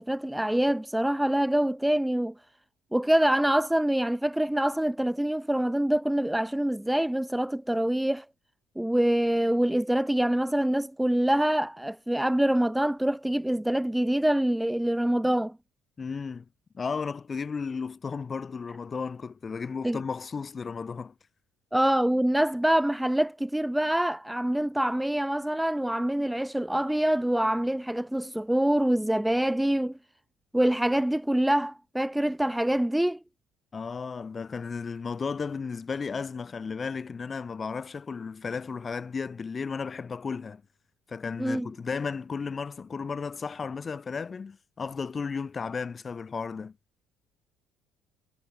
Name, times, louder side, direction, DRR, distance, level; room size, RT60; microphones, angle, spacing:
voice 1, 0.0-2.3 2.9-8.2 8.8-15.5 19.8-20.0 21.7-30.0 30.5-33.2 41.4-41.7, right 1 dB, 5° right, 0.6 m, -25 dB
voice 2, 16.0-16.5 16.7-21.1 33.7-40.6 41.1-46.8, left 5 dB, 35° left, 1.1 m, -34 dB
hypercardioid pair, 60°, 0 cm